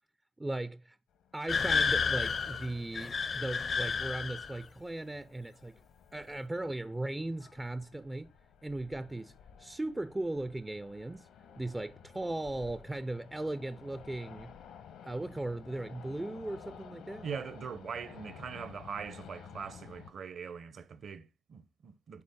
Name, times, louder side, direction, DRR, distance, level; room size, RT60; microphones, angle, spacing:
voice 1, 0.4-1.0 1.3-5.8 6.1-8.3 8.6-9.3 9.6-11.3 11.6-14.5 15.0-17.3, right 2 dB, 15° right, 0.3 m, -37 dB
sound 1, 1.1-20.1, left 7 dB, 80° left, 1.0 m, -54 dB
sound 2, 1.5-4.6, left 5 dB, 45° left, 0.5 m, -31 dB
voice 2, 17.2-22.2, right 6 dB, 55° right, 0.7 m, -42 dB
9.5 x 3.8 x 3.6 m
supercardioid pair, 65°, 0 cm